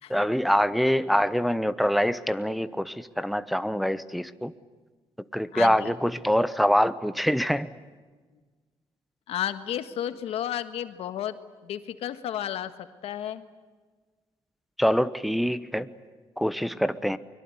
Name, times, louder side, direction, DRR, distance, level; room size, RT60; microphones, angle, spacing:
voice 1, 0.1-4.5 5.3-7.7 14.8-15.9 16.4-17.2, equal, ahead, 13 dB, 1.0 m, -25 dB
voice 2, 5.5-5.9 9.3-11.4 11.6-13.4, left 11 dB, 85° left, 11 dB, 1.6 m, -32 dB
24.0 x 22.5 x 9.7 m, 1.4 s
cardioid pair, 115°, 10 cm